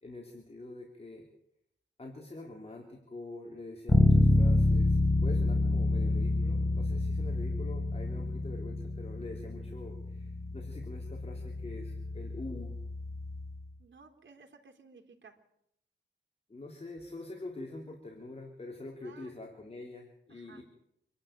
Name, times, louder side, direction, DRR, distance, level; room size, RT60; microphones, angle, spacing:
voice 1, 0.0-1.3 2.0-12.8 16.5-20.6, left 2 dB, 30° left, 0 dB, 3.5 m, -45 dB
Bass guitar, 3.9-13.7, left 2 dB, 15° left, 0.9 m, -28 dB
voice 2, 13.8-15.3 19.0-19.3 20.3-20.6, right 4 dB, 70° right, 1 dB, 3.8 m, -56 dB
26.5 x 12.0 x 9.0 m, 0.78 s
wide cardioid pair, 95°, 20 cm